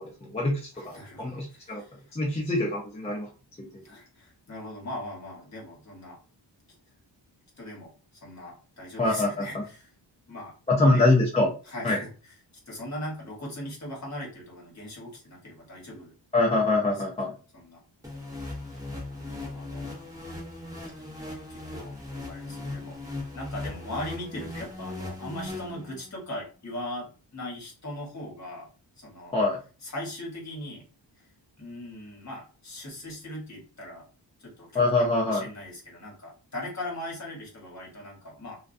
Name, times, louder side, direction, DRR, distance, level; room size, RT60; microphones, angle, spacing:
voice 1, 0.0-1.8 2.1-3.3 3.7-3.8 9.0-9.5 10.7-11.5 11.8-12.0 16.3-17.3 29.3-29.6 34.7-35.4, left 2 dB, 15° left, -4 dB, 0.5 m, -24 dB
voice 2, 0.7-2.1 3.8-6.2 7.6-9.9 10.3-11.0 11.6-12.1 12.7-16.1 16.9-17.0 17.5-17.8 18.6-20.0 21.0-21.1 21.5-22.9 23.3-28.7 29.0-29.3 29.8-30.8 31.2-31.3 31.6-34.0 34.4-38.6, left 1 dB, 40° left, -2 dB, 1.1 m, -39 dB
sound 1, 18.0-26.2, left 2 dB, 10° right, 0.8 m, -38 dB
2.3 x 2.2 x 2.5 m, 0.36 s
wide cardioid pair, 125°, 43 cm